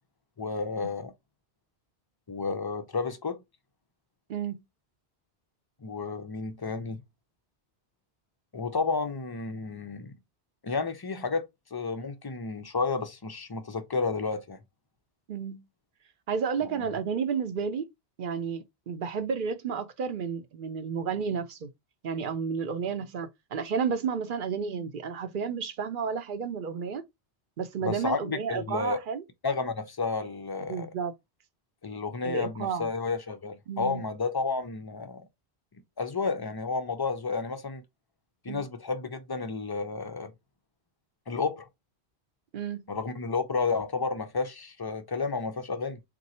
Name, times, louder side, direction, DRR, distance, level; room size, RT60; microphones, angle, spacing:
voice 1, 0.4-1.1 2.3-3.4 5.8-7.0 8.5-10.1 10.6-14.6 16.7-16.9 27.8-29.0 29.4-30.9 31.8-35.3 36.0-37.8 38.4-40.3 41.3-41.7 42.9-46.0, left 4 dB, 35° left, 0.3 m, -31 dB
voice 2, 4.3-4.6 15.3-15.6 16.3-17.8 18.2-21.7 22.0-27.0 27.6-29.2 30.7-31.1 32.2-32.9 33.7-34.0 38.5-38.6 42.5-42.9, right 6 dB, 55° right, 0.8 m, -31 dB
3.8 x 2.7 x 4.1 m
omnidirectional pair, 1.1 m